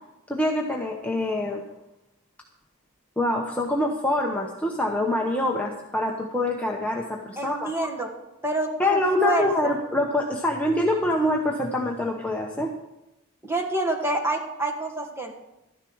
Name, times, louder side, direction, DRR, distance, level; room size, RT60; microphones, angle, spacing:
voice 1, 0.3-1.6 3.2-7.7 8.8-12.7, left 1 dB, 5° left, -1 dB, 0.9 m, -25 dB
voice 2, 7.4-8.1 8.4-9.7 13.4-15.3, right 2 dB, 10° right, 1 dB, 1.6 m, -27 dB
13.0 x 10.5 x 4.7 m, 0.91 s
head